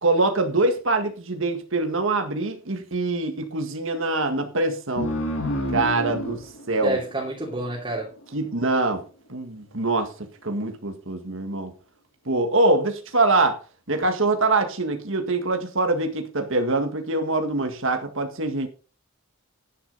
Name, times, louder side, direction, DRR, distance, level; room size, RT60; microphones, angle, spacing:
voice 1, 0.0-5.2 5.7-7.0 8.3-9.0 9.3-10.1 10.4-11.7 12.3-13.6 13.9-18.7, right 2 dB, 60° right, 1.8 m, -24 dB
sound 1, 5.0-8.1, equal, 60° left, 3.2 m, -30 dB
voice 2, 6.8-8.1, right 1 dB, 25° right, 3.1 m, -28 dB
11.5 x 10.0 x 4.1 m
head